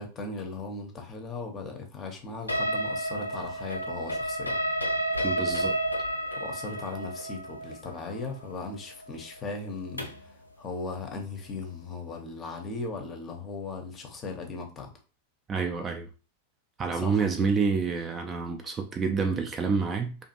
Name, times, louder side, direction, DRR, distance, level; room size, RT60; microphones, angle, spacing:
voice 1, 0.0-4.6 6.4-14.9 16.9-17.5, left 3 dB, 25° left, 0.6 m, -38 dB
sound 1, 2.5-10.3, right 1 dB, 85° left, 0.4 m, -31 dB
voice 2, 5.2-5.8 15.5-16.1 16.8-20.2, right 5 dB, 20° right, 0.3 m, -28 dB
2.5 x 2.5 x 2.7 m
figure-of-eight pair, 90°, 0 cm